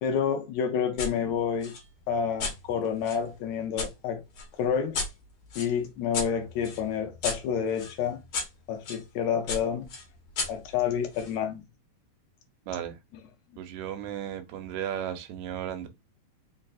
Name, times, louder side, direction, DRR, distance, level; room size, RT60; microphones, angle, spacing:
voice 1, 0.0-1.7 2.1-4.2 4.6-5.0 5.6-8.2 8.7-9.9 10.5-11.6, left 7 dB, 80° left, 1.7 m, -29 dB
sound 1, 1.0-1.1 1.6-3.9 4.4-9.0 9.5-11.4, left 4 dB, 55° left, 1.6 m, -36 dB
voice 2, 13.6-15.9, right 10 dB, 80° right, 2.0 m, -35 dB
4.7 x 3.2 x 2.4 m
omnidirectional pair, 3.6 m